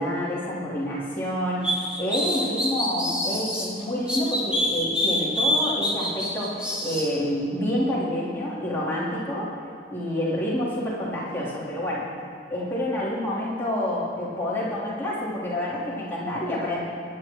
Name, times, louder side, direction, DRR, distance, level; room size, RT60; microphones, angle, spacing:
voice 1, 0.0-1.6 2.0-9.5 9.9-12.1 12.5-16.8, left 1 dB, 15° left, -9 dB, 3.5 m, -28 dB
sound 1, 1.6-3.7 4.1-7.1, left 1 dB, 5° right, 2.1 m, -26 dB
20.0 x 11.5 x 3.2 m, 2.6 s
head